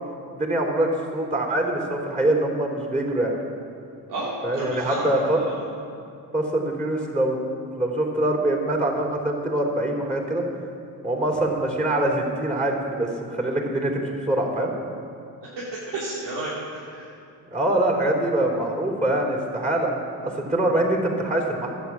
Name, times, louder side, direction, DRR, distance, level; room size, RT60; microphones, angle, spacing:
voice 1, 0.4-3.3 4.4-5.4 6.3-7.4 7.7-10.4 11.0-14.7 17.5-19.9 20.2-21.7, right 1 dB, 15° right, 0 dB, 3.8 m, -24 dB
voice 2, 4.1-5.6 15.4-17.1, right 2 dB, 70° right, -7 dB, 2.7 m, -32 dB
12.5 x 8.3 x 7.3 m, 2.5 s
hypercardioid pair, 60°, 43 cm